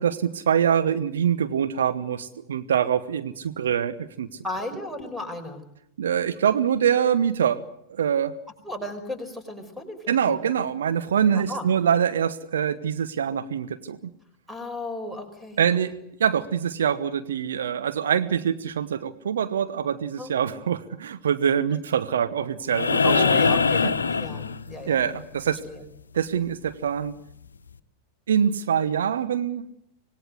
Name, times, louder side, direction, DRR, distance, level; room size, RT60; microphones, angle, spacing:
voice 1, 0.0-4.3 6.0-7.6 7.9-8.3 10.1-14.0 15.6-15.9 16.2-23.5 23.8-23.9 24.9-25.6 26.1-27.1 28.3-29.6, right 8 dB, 65° right, 11 dB, 1.1 m, -24 dB
voice 2, 4.4-5.6 8.6-10.4 11.3-11.7 14.5-15.6 20.2-20.4 23.0-25.0 25.7-25.8 28.6-28.7, left 1 dB, 5° right, 9 dB, 5.5 m, -34 dB
sound 1, 22.7-25.0 26.9-27.0, left 5 dB, 70° left, 1.0 m, -22 dB
25.5 x 20.0 x 8.0 m, 0.76 s
figure-of-eight pair, 90°, 0 cm